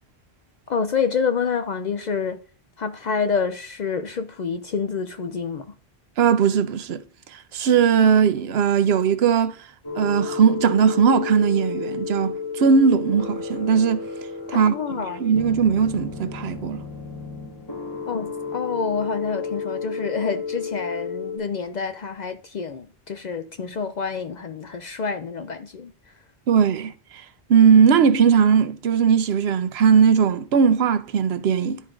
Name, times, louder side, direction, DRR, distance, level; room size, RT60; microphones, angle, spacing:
voice 1, 0.7-2.4 2.8-5.7 14.5-15.2 18.1-25.9, left 5 dB, 55° left, 0.5 m, -27 dB
voice 2, 6.2-7.0 7.3-9.6 10.0-14.0 14.5-14.7 15.2-16.8 26.5-26.9 27.5-31.8, right 6 dB, 85° right, 0.9 m, -18 dB
sound 1, 9.8-21.4, left 5 dB, 25° left, 1.3 m, -32 dB
12.0 x 4.6 x 2.4 m
omnidirectional pair, 1.0 m